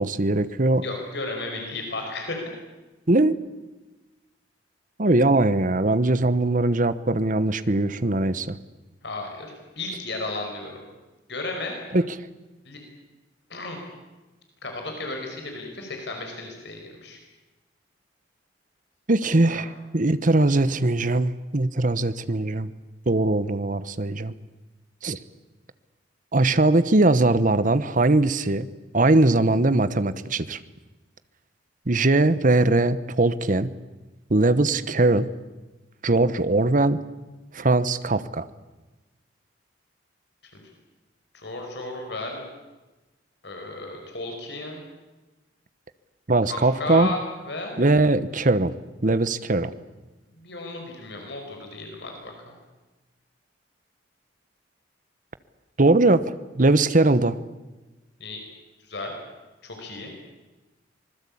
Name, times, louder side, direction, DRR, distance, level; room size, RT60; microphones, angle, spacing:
voice 1, 0.0-0.8 3.1-3.3 5.0-8.6 11.9-12.1 19.1-22.7 23.1-24.3 25.0-25.2 26.3-28.7 28.9-30.6 31.9-33.7 34.3-35.3 36.0-37.0 37.5-38.5 46.3-47.1 47.8-48.7 49.0-49.7 55.8-57.4, right 2 dB, 45° right, 14 dB, 1.1 m, -21 dB
voice 2, 0.8-2.3 9.0-9.5 9.7-10.8 11.3-11.7 12.6-12.8 13.5-13.8 14.6-17.2 19.5-19.6 40.5-40.6 41.3-42.4 43.4-44.8 46.5-47.2 47.5-47.7 50.4-52.5 58.2-58.4 58.9-59.1 59.6-60.1, left 2 dB, 65° left, 2 dB, 5.2 m, -34 dB
25.5 x 20.5 x 8.6 m, 1.1 s
head